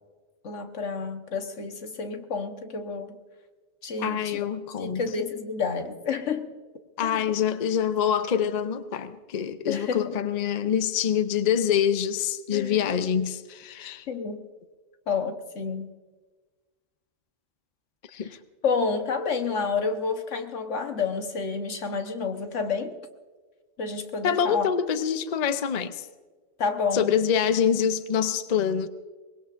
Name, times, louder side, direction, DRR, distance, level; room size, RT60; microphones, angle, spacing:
voice 1, 0.4-3.2 3.8-4.4 4.8-6.5 7.0-7.2 9.7-10.1 12.5-12.9 14.1-14.5 15.1-15.9 18.1-18.3 18.6-22.9 23.8-24.7 26.6-27.1, left 5 dB, 80° left, 6 dB, 1.5 m, -29 dB
voice 2, 4.0-5.0 7.0-14.1 18.1-18.4 24.2-26.1 26.9-28.9, left 8 dB, 45° left, 11 dB, 0.7 m, -25 dB
23.0 x 20.5 x 2.5 m, 1.4 s
omnidirectional pair, 1.2 m